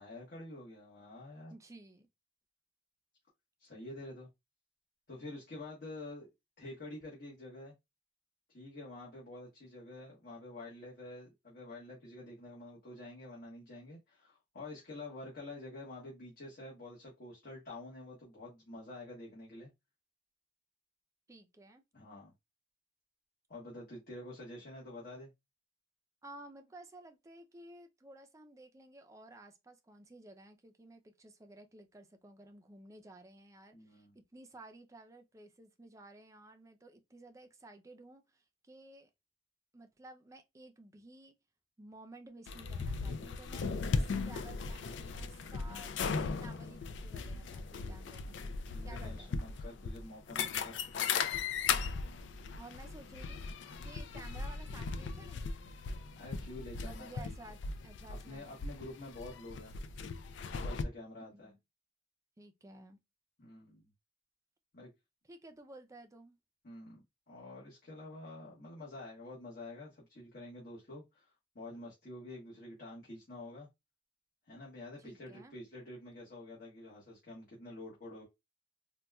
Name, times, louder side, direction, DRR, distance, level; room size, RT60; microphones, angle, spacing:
voice 1, 0.0-1.5 3.6-4.3 5.1-6.3 6.6-7.7 8.5-19.7 21.9-22.3 23.5-25.3 33.7-34.1 48.7-51.4 56.2-57.4 58.1-59.7 60.5-61.5 63.4-63.9 64.7-64.9 66.6-73.7 74.5-78.2, left 2 dB, 55° left, 1.1 m, -48 dB
voice 2, 1.5-2.1 21.3-21.8 26.2-39.1 39.7-41.4 41.8-48.4 48.8-49.3 52.6-53.4 53.8-55.4 56.8-58.6 61.3-61.6 62.4-63.0 65.3-66.4 75.0-75.5, right 2 dB, 15° right, 0.4 m, -54 dB
sound 1, 42.5-60.8, left 5 dB, 85° left, 0.4 m, -38 dB
4.0 x 2.2 x 2.2 m
head